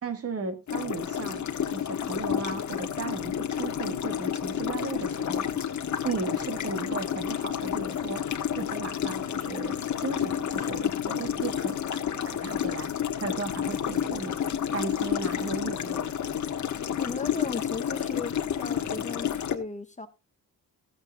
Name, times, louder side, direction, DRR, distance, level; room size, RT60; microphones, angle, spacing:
voice 1, 0.0-1.4 1.7-5.5 6.0-8.2 8.6-12.9 13.2-14.4 14.7-16.1, right 4 dB, 40° right, 2.1 m, -36 dB
sound 1, 0.7-19.6, left 9 dB, 50° left, 1.6 m, -30 dB
voice 2, 17.0-20.1, left 4 dB, 20° left, 0.9 m, -36 dB
15.5 x 8.1 x 3.8 m
wide cardioid pair, 160°, 37 cm